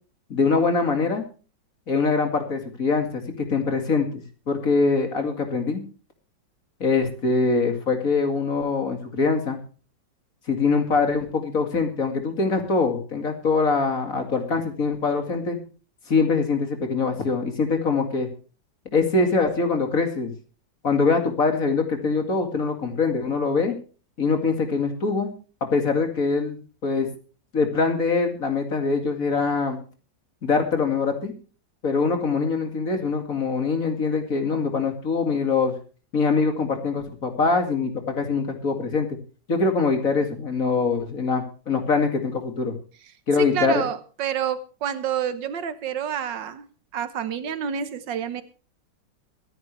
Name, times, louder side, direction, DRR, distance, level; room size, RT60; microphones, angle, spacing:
voice 1, 0.3-1.3 1.9-5.8 6.8-9.6 10.5-15.6 16.1-18.3 18.9-20.3 20.8-23.7 24.2-25.3 25.6-27.1 27.5-29.8 30.4-31.3 31.8-35.7 36.1-39.2 39.5-42.7 43.3-43.8, left 4 dB, 50° left, 5 dB, 2.7 m, -23 dB
voice 2, 43.4-46.7 46.9-48.4, right 8 dB, 85° right, 13 dB, 1.8 m, -28 dB
23.0 x 10.5 x 3.3 m, 0.36 s
omnidirectional pair, 1.9 m